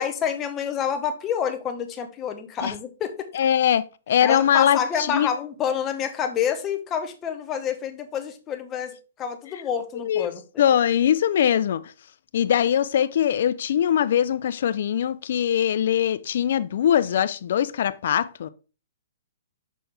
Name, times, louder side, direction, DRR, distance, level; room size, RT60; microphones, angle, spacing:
voice 1, 0.0-3.3 4.2-10.4, left 8 dB, 20° left, 0.9 m, -28 dB
voice 2, 3.3-5.3 10.0-10.3 10.6-11.8 12.3-18.5, left 9 dB, 60° left, 0.5 m, -22 dB
6.1 x 5.7 x 3.4 m
hypercardioid pair, 150°, 0 cm